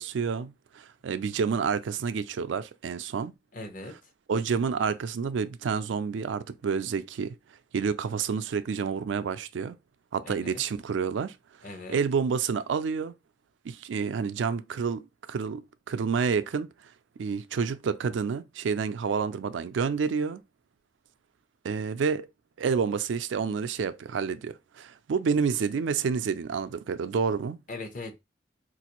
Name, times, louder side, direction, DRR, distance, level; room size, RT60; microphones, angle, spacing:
voice 1, 0.0-3.3 4.3-7.4 7.7-9.8 10.1-11.4 11.9-13.1 13.6-16.7 17.2-20.4 21.6-22.3 22.6-27.6, right 5 dB, 85° right, 0.4 m, -29 dB
voice 2, 3.5-4.0 10.2-10.6 11.6-12.0 27.7-28.2, left 2 dB, 45° left, 0.7 m, -39 dB
4.0 x 2.5 x 2.9 m
head